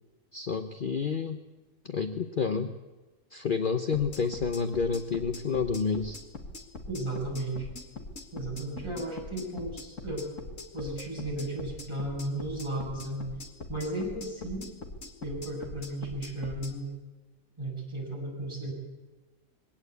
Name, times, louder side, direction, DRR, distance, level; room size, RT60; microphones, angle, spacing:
voice 1, 0.3-1.4 1.9-2.7 3.3-6.2, left 5 dB, 40° left, 8 dB, 1.0 m, -29 dB
sound 1, 3.9-16.7, left 2 dB, 65° left, 2.2 m, -42 dB
voice 2, 6.9-7.7 8.3-10.3 10.7-13.3 13.7-14.7 15.2-16.9 17.6-18.7, right 1 dB, 20° right, -2 dB, 7.4 m, -34 dB
22.0 x 17.5 x 8.2 m, 1.2 s
omnidirectional pair, 1.4 m